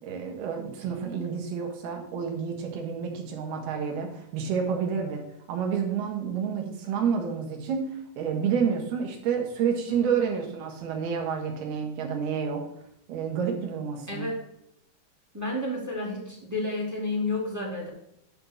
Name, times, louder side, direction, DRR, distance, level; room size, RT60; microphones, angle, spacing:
voice 1, 0.0-5.2 5.5-12.6 13.1-14.3, right 6 dB, 85° right, 2 dB, 3.5 m, -29 dB
voice 2, 14.1-14.4 15.3-17.9, left 2 dB, 5° right, -4 dB, 1.5 m, -30 dB
9.8 x 4.0 x 7.2 m, 0.78 s
omnidirectional pair, 4.4 m